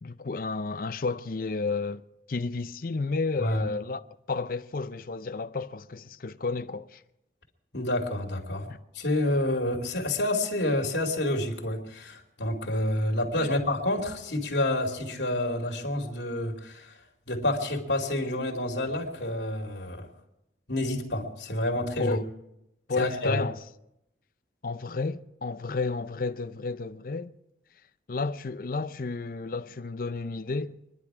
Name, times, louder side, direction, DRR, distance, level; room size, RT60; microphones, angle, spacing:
voice 1, 0.0-2.0 2.3-4.0 4.3-7.0 13.4-13.5 22.0-22.3 22.9-23.6 24.6-27.3 28.1-30.8, left 4 dB, 50° left, 0.6 m, -31 dB
voice 2, 7.7-8.7 8.9-17.0 17.3-20.1 20.7-22.2 22.9-23.4, left 1 dB, 80° left, 2.7 m, -28 dB
26.0 x 11.0 x 4.8 m
head